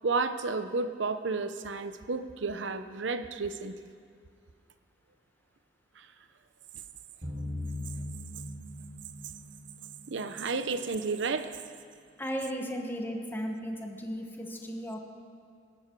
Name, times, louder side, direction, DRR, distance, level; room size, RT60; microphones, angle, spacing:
voice 1, 0.0-3.7 6.0-6.1 10.1-11.6, right 4 dB, 80° right, 11 dB, 0.7 m, -32 dB
sound 1, 7.2-10.9, left 1 dB, 40° right, 3.5 m, -40 dB
voice 2, 12.2-15.0, equal, 10° left, 1 dB, 1.3 m, -35 dB
22.0 x 11.5 x 4.6 m, 2.2 s
head